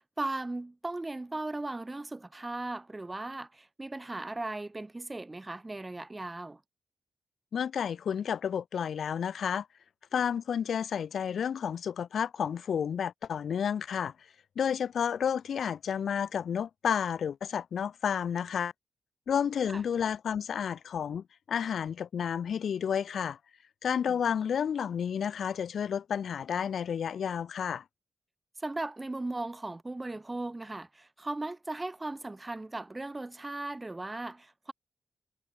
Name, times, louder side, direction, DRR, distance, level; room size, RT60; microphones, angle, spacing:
voice 1, 0.2-6.6 19.7-19.8 24.1-24.2 28.6-34.7, right 2 dB, 25° right, 1.4 m, -37 dB
voice 2, 7.5-9.7 10.1-14.1 14.6-18.7 19.3-23.4 23.8-27.8, left 8 dB, 75° left, 1.9 m, -31 dB
supercardioid pair, 50°, 0 cm